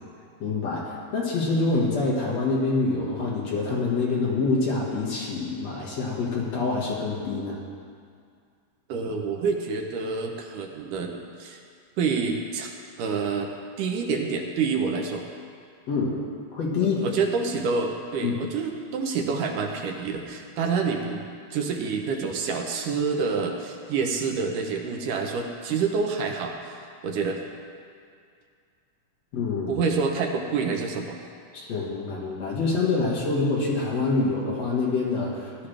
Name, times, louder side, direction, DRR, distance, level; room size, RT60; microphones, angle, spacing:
voice 1, 0.4-7.6 15.9-16.1 16.5-17.0 18.2-18.3 29.3-29.8 31.5-35.7, left 3 dB, 55° left, -4 dB, 2.6 m, -26 dB
voice 2, 8.9-11.6 12.0-12.7 13.0-13.5 13.8-15.3 17.0-26.7 27.0-27.4 29.7-31.2, right 5 dB, 75° right, 2 dB, 2.4 m, -27 dB
16.5 x 12.0 x 3.4 m, 2.2 s
omnidirectional pair, 3.8 m